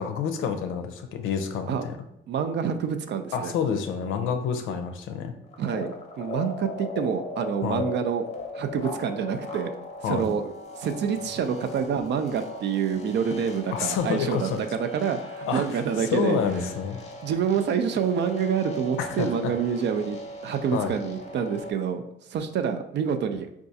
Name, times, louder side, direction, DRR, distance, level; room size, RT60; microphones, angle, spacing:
voice 1, 0.0-1.9 3.3-5.3 7.6-7.8 10.0-10.3 13.7-14.6 15.5-15.8 16.1-17.0 19.0-19.5 20.7-20.9, left 7 dB, 90° left, 7 dB, 0.5 m, -28 dB
voice 2, 2.3-3.5 5.6-8.2 8.5-9.7 10.1-16.4 17.2-20.2 20.4-22.0 22.3-23.5, right 7 dB, 60° right, 8 dB, 0.4 m, -27 dB
sound 1, 5.5-21.7, left 2 dB, 35° left, 0.6 m, -39 dB
4.6 x 2.4 x 2.7 m, 0.82 s
cardioid pair, 90°, 20 cm